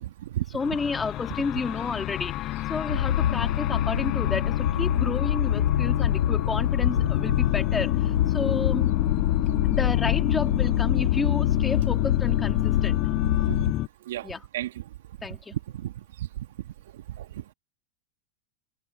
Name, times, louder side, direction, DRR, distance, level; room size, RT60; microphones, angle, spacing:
voice 1, 0.0-0.4 13.5-13.6 14.1-14.8 15.5-15.9 16.2-16.3 17.2-17.3, right 13 dB, 70° right, 2.2 m, -32 dB
voice 2, 0.5-8.9 9.7-13.0 14.2-14.4 15.2-15.5, left 4 dB, 15° left, 3.1 m, -31 dB
sound 1, 0.6-13.9, left 16 dB, 45° left, 6.5 m, -29 dB
sound 2, 2.9-13.7, left 10 dB, 80° left, 1.7 m, -25 dB
hypercardioid pair, 95°, 0 cm